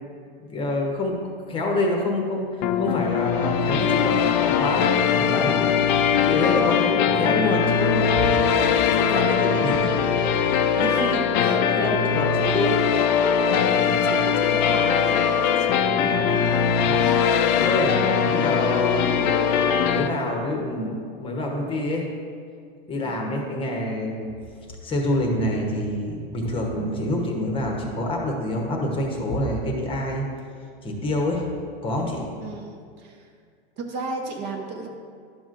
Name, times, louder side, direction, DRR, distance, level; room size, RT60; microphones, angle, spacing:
voice 1, 0.4-1.2 1.5-8.3 8.8-10.0 10.4-10.7 11.3-12.8 13.1-13.2 16.8-17.0 17.6-19.3 19.8-22.1 22.9-24.3 24.8-30.2 30.8-31.5 31.8-32.3, left 1 dB, 20° left, 0 dB, 0.9 m, -27 dB
sound 1, 2.6-20.1, left 7 dB, 50° left, 0.5 m, -21 dB
voice 2, 10.7-11.9 13.6-17.3 18.0-18.4 23.0-23.2 32.4-33.3 33.8-34.9, right 3 dB, 35° right, 2 dB, 0.7 m, -34 dB
11.5 x 6.1 x 2.5 m, 2.2 s
supercardioid pair, 145°, 29 cm